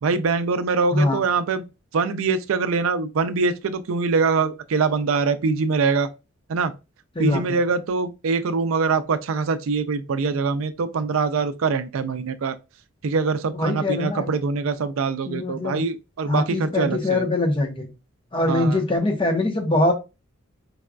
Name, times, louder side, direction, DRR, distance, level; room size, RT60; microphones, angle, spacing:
voice 1, 0.0-1.6 1.9-6.1 6.5-6.7 7.2-12.5 13.0-17.3 18.5-18.8, right 4 dB, 80° right, 0.4 m, -23 dB
voice 2, 0.9-1.2 7.2-7.6 13.5-14.3 15.3-15.8 16.3-17.9 18.3-19.9, left 2 dB, 25° left, 0.7 m, -23 dB
4.7 x 2.2 x 2.4 m
head